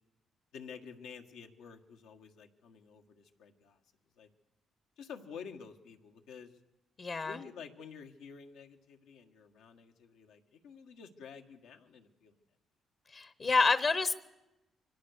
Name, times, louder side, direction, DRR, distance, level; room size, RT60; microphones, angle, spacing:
voice 1, 0.5-3.8 4.2-4.3 5.0-6.5 7.2-12.3 13.4-13.5, left 6 dB, 90° left, 4 dB, 1.7 m, -50 dB
voice 2, 7.0-7.4 13.1-14.1, left 4 dB, 45° left, 13 dB, 1.0 m, -28 dB
24.5 x 17.5 x 6.6 m, 0.95 s
cardioid pair, 90°, 0 cm